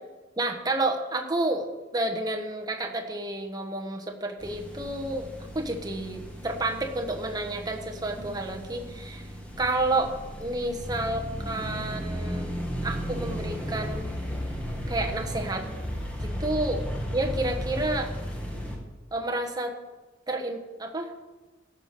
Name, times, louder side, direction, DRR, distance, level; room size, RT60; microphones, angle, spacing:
voice 1, 0.4-9.3 9.6-10.1 10.4-12.5 12.8-14.1 14.9-15.7 16.2-16.8 17.1-18.1 19.1-19.7 20.3-21.1, right 2 dB, 20° right, 2 dB, 1.2 m, -30 dB
sound 1, 4.4-18.8, equal, 5° left, 1.7 m, -35 dB
16.5 x 5.8 x 6.8 m, 1.2 s
head